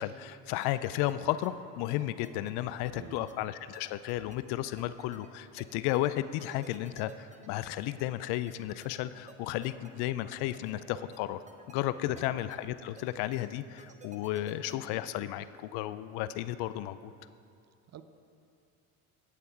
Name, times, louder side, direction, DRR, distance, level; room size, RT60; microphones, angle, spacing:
voice 1, 0.0-11.4 11.7-17.1, left 14 dB, 60° left, 14 dB, 0.5 m, -33 dB
sound 1, 0.6-15.3, right 3 dB, 15° right, 0.9 m, -55 dB
voice 2, 2.9-3.3 12.0-12.3 17.9-18.0, right 9 dB, 35° right, 11 dB, 0.6 m, -48 dB
8.9 x 8.3 x 4.6 m, 2.4 s
hypercardioid pair, 75°, 44 cm